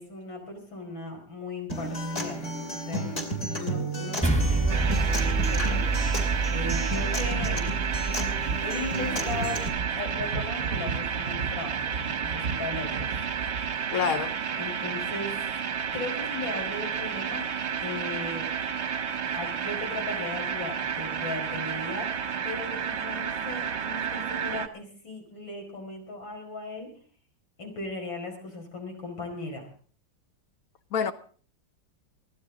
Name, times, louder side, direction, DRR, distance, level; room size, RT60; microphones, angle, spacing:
voice 1, 0.0-5.8 6.5-7.7 8.0-8.2 8.6-13.1 13.5-14.0 14.6-15.5 15.9-17.5 17.8-18.5 19.3-26.9 27.6-29.7, left 2 dB, 85° left, 5.4 m, -37 dB
Acoustic guitar, 1.7-9.7, right 1 dB, 40° left, 3.5 m, -33 dB
sound 1, 4.2-8.8, right 3 dB, 5° left, 1.8 m, -28 dB
sound 2, 4.7-24.7, right 7 dB, 45° right, 1.0 m, -31 dB
voice 2, 13.9-14.4 30.9-31.1, left 7 dB, 55° left, 1.4 m, -26 dB
22.5 x 15.5 x 3.8 m
omnidirectional pair, 2.0 m